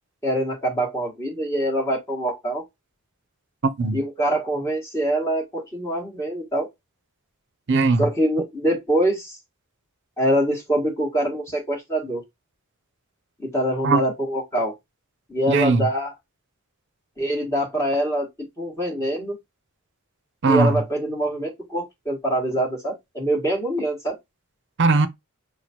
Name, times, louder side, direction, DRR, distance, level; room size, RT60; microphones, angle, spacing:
voice 1, 0.2-2.6 3.9-6.7 8.0-9.4 10.2-12.2 13.4-14.7 15.3-16.1 17.2-18.3 18.6-19.4 20.5-24.1, right 1 dB, 15° left, 1.4 m, -24 dB
voice 2, 3.6-4.0 7.7-8.1 13.8-14.0 15.5-15.9 20.4-20.8 24.8-25.1, right 3 dB, 55° right, 0.6 m, -19 dB
6.2 x 2.2 x 2.8 m
head